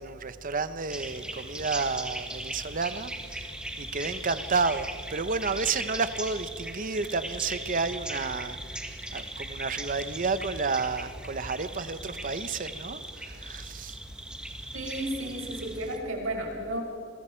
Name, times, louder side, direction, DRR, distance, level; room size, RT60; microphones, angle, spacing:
voice 1, 0.0-3.5 3.8-14.0, right 4 dB, 40° right, 12 dB, 0.9 m, -31 dB
sound 1, 0.9-16.0, right 1 dB, 5° right, 1.7 m, -39 dB
voice 2, 14.7-16.8, right 1 dB, 80° right, 0 dB, 5.6 m, -33 dB
28.0 x 23.0 x 4.5 m, 2.7 s
head